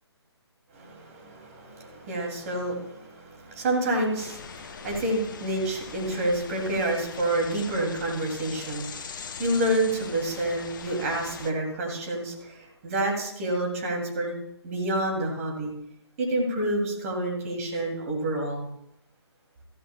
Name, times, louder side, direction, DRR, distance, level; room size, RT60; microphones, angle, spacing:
voice 1, 0.7-14.3 14.6-15.7 16.2-18.7, right 1 dB, 35° right, 1 dB, 2.7 m, -28 dB
sound 1, 4.2-11.5, left 6 dB, 45° left, 0.8 m, -41 dB
14.0 x 13.5 x 2.3 m, 0.77 s
figure-of-eight pair, 140°, 14 cm